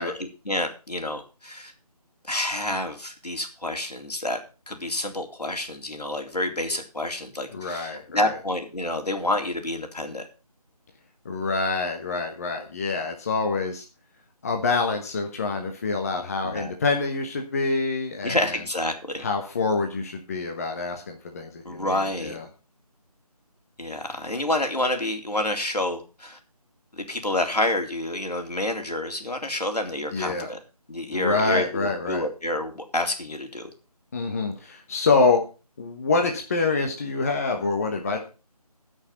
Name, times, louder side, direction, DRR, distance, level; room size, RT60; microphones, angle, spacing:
voice 1, 0.0-1.7 2.3-4.4 4.7-10.3 16.4-16.7 18.2-19.2 21.7-22.4 23.8-26.4 27.0-30.6 30.9-33.7, left 1 dB, 80° left, 4 dB, 3.7 m, -28 dB
voice 2, 7.5-8.4 11.2-13.8 14.4-18.6 19.2-22.5 30.1-30.5 31.1-32.2 34.1-35.4 35.8-38.2, left 3 dB, 25° left, 3 dB, 1.3 m, -26 dB
15.5 x 6.4 x 5.6 m, 0.33 s
figure-of-eight pair, 160°, 20 cm